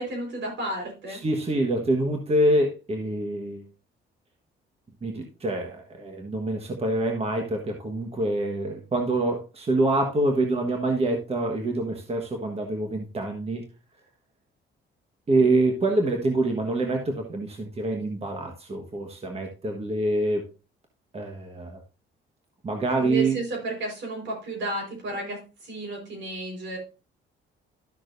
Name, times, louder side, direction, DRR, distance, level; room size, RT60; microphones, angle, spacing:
voice 1, 0.0-1.2 23.0-26.8, right 2 dB, 70° right, 1 dB, 4.7 m, -32 dB
voice 2, 1.1-3.7 5.0-13.7 15.3-20.5 21.1-21.8 22.6-23.4, right 2 dB, 30° right, 2 dB, 1.4 m, -26 dB
13.0 x 6.0 x 2.6 m, 0.32 s
cardioid pair, 90°, 20 cm